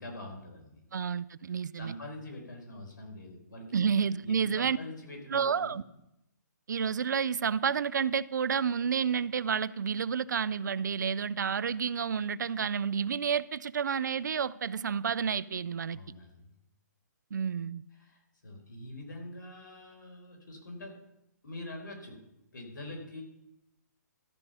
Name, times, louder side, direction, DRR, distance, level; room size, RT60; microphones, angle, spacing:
voice 1, 0.0-0.8 1.5-3.8 4.2-5.8 15.9-16.5 18.0-20.9 21.4-22.2 22.5-23.2, left 1 dB, 85° left, 4.4 m, -44 dB
voice 2, 0.9-1.9 3.7-4.8 5.3-5.8 6.7-16.0 17.3-17.8, right 7 dB, 75° right, 0.5 m, -30 dB
13.5 x 5.5 x 6.8 m
hypercardioid pair, 150°, 10 cm